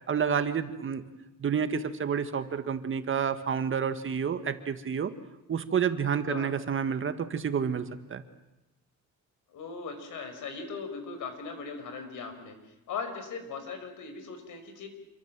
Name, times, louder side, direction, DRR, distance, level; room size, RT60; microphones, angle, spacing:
voice 1, 0.1-1.0 1.4-5.1 5.5-7.8 8.1-8.2, right 7 dB, 40° right, 10 dB, 1.8 m, -29 dB
voice 2, 9.5-12.5 12.9-14.9, left 5 dB, 80° left, 7 dB, 5.4 m, -39 dB
27.5 x 23.5 x 7.6 m, 0.97 s
cardioid pair, 135°, 30 cm